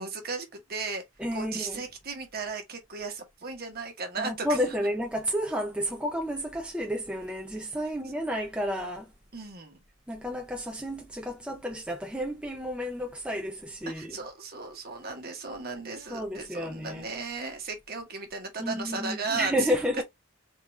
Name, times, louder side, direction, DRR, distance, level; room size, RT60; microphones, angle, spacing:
voice 1, 0.0-1.0 1.3-4.5 9.3-9.8 13.9-19.7, right 4 dB, 45° right, 1.3 m, -36 dB
voice 2, 1.2-1.8 4.2-9.1 10.1-14.2 16.1-17.1 18.6-20.0, equal, 5° right, 0.6 m, -31 dB
3.7 x 2.6 x 4.5 m
head